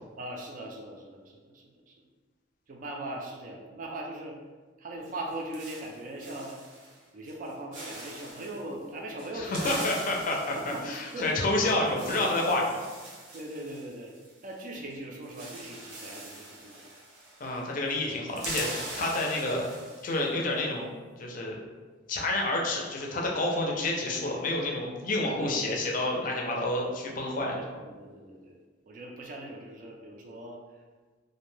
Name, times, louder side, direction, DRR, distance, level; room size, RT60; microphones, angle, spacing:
voice 1, 0.2-1.9 2.7-4.4 4.8-6.6 7.1-10.0 10.5-11.3 12.0-12.5 13.3-14.1 14.4-16.8 25.2-25.6 27.5-28.6 28.9-30.6, right 1 dB, 45° right, 0 dB, 0.3 m, -40 dB
sound 1, 5.0-7.0 7.3-7.5 7.7-8.6 9.2-14.6 14.9-15.0 15.2-17.6 17.9-20.3, right 2 dB, 90° right, 0.7 m, -42 dB
voice 2, 9.3-12.6 17.4-19.7 20.0-20.9 21.2-21.6 22.1-27.6, left 2 dB, 45° left, -1 dB, 0.5 m, -29 dB
2.5 x 2.1 x 3.1 m, 1.4 s
head